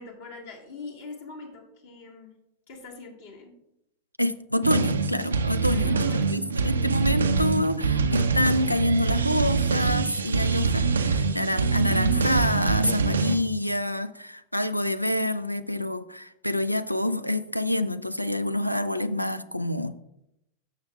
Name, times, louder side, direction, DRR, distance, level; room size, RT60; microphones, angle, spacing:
voice 1, 0.0-2.3 2.7-3.5 5.6-6.3, left 3 dB, 55° left, -1 dB, 1.7 m, -42 dB
voice 2, 4.2-6.0 6.3-19.9, left 1 dB, 90° left, 14 dB, 0.4 m, -27 dB
sound 1, 4.6-13.4, right 4 dB, 70° right, 0.5 m, -24 dB
14.0 x 5.8 x 2.3 m, 0.83 s
figure-of-eight pair, 90°, 0 cm